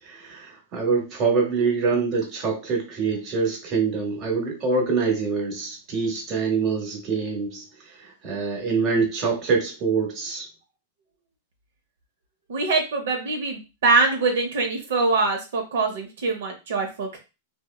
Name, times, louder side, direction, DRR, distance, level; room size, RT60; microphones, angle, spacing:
voice 1, 0.0-10.5, right 4 dB, 35° right, 0 dB, 1.0 m, -25 dB
voice 2, 12.5-17.2, right 3 dB, 75° right, 1 dB, 0.6 m, -23 dB
2.7 x 2.1 x 2.2 m, 0.27 s
hypercardioid pair, 130°, 0 cm